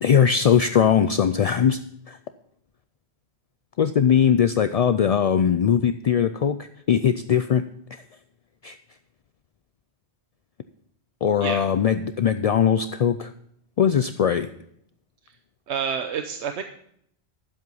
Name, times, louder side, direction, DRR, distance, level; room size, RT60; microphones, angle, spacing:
voice 1, 0.0-1.8 2.1-2.2 3.8-7.6 7.9-8.0 8.6-8.7 11.2-13.3 13.8-14.5, left 8 dB, 60° left, 10 dB, 0.4 m, -20 dB
voice 2, 15.7-16.6, right 7 dB, 85° right, 7 dB, 1.1 m, -28 dB
11.0 x 7.7 x 5.4 m, 0.68 s
omnidirectional pair, 1.1 m